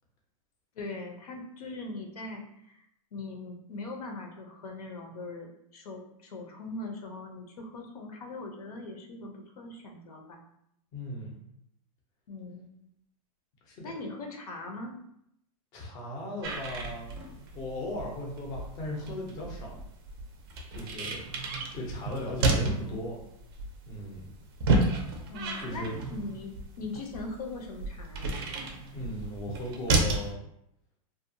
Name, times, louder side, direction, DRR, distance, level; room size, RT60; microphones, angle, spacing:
voice 1, 0.7-2.8 3.1-10.4 12.3-12.7 13.8-14.9 22.6-23.1 25.3-28.3, left 2 dB, 85° left, 3 dB, 0.7 m, -40 dB
voice 2, 10.9-11.4 13.6-13.9 15.7-17.1 17.5-19.8 20.7-21.2 21.7-23.2 23.9-24.3 25.6-25.9 28.9-30.4, left 1 dB, 20° left, -1 dB, 0.5 m, -37 dB
sound 1, 16.4-30.3, right 2 dB, 40° right, 0.4 m, -32 dB
2.6 x 2.2 x 2.6 m, 0.75 s
supercardioid pair, 165°, 19 cm